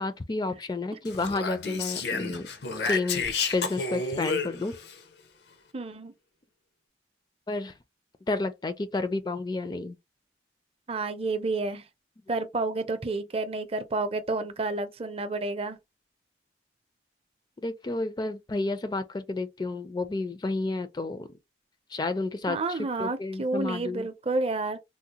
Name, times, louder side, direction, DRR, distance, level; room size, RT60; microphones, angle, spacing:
voice 1, 0.0-2.5 2.8-4.7 7.5-7.8 8.3-10.0 17.6-21.3 21.9-24.1, left 2 dB, 25° left, 0.4 m, -31 dB
Speech, 1.0-4.9, left 4 dB, 70° left, 0.6 m, -31 dB
voice 2, 5.7-6.1 10.9-11.8 12.3-15.8 22.5-24.8, right 3 dB, 35° right, 0.5 m, -30 dB
3.7 x 2.0 x 2.8 m
head